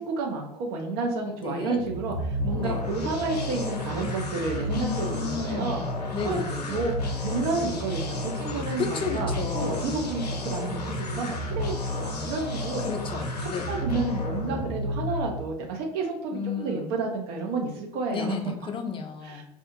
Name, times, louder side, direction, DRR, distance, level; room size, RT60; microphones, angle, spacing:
voice 1, 0.0-5.8 6.2-6.4 6.7-12.8 13.4-18.4 19.2-19.4, right 3 dB, 50° right, 0 dB, 0.5 m, -31 dB
voice 2, 1.4-1.8 2.6-2.8 4.7-6.9 8.8-10.0 12.8-13.7 16.3-16.9 18.1-19.4, left 6 dB, 25° left, 5 dB, 0.5 m, -33 dB
sound 1, 1.7-15.5, left 1 dB, 80° left, 0.5 m, -31 dB
2.4 x 2.4 x 2.4 m, 0.83 s
figure-of-eight pair, 65°, 20 cm